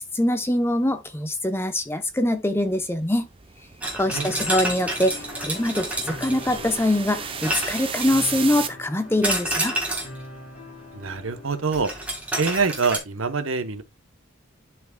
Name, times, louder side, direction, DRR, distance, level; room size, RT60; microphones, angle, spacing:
voice 1, 0.1-3.3 3.9-9.8, left 1 dB, 10° left, 0.7 m, -23 dB
sound 1, 2.7-8.7, right 7 dB, 25° right, 0.6 m, -35 dB
sound 2, 3.8-6.8 7.4-8.4 9.2-10.2 11.7-13.0, right 1 dB, 5° right, 1.8 m, -29 dB
sound 3, 4.0-12.1, left 2 dB, 40° left, 3.1 m, -42 dB
voice 2, 4.1-4.5 10.9-11.9 12.4-13.8, right 4 dB, 75° right, 0.9 m, -25 dB
11.0 x 4.7 x 2.2 m
head